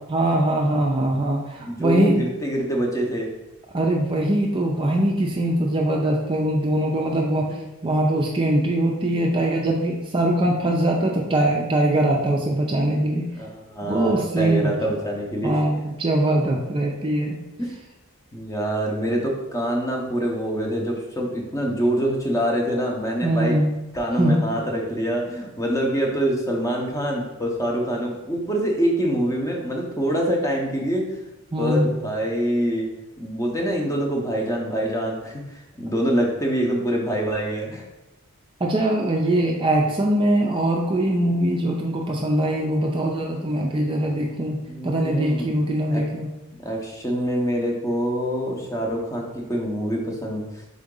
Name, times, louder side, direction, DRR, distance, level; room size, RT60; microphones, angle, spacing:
voice 1, 0.1-2.3 3.7-7.5 7.8-13.3 13.8-14.7 15.4-17.4 23.2-23.7 24.2-24.5 31.5-31.9 38.6-46.3, right 1 dB, 25° right, 0 dB, 0.4 m, -22 dB
voice 2, 1.6-3.3 7.5-7.6 13.3-15.6 17.6-17.7 18.3-23.6 23.9-31.2 31.6-32.9 33.2-37.8 44.7-45.6 45.9-46.0 46.6-50.6, equal, 15° left, 0 dB, 0.7 m, -25 dB
3.8 x 3.7 x 3.7 m, 0.98 s
head